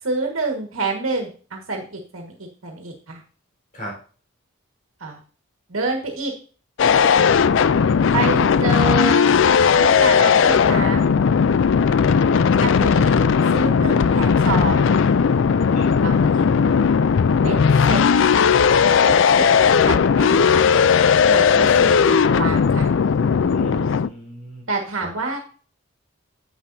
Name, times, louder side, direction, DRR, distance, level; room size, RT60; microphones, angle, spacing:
voice 1, 0.0-2.3 2.6-3.2 5.0-5.2 5.7-6.3 8.1-9.3 9.8-11.1 12.6-13.2 13.5-14.9 16.0-16.4 17.4-17.6 17.8-18.0 19.0-20.9 21.2-22.9 24.7-25.4, right 3 dB, 75° right, 1 dB, 1.7 m, -27 dB
sound 1, 6.8-24.1, left 6 dB, 60° left, 0.4 m, -17 dB
voice 2, 21.5-22.2 23.5-24.7 25.0-25.1, right 1 dB, 40° left, -2 dB, 4.2 m, -36 dB
10.0 x 7.9 x 2.7 m, 0.40 s
head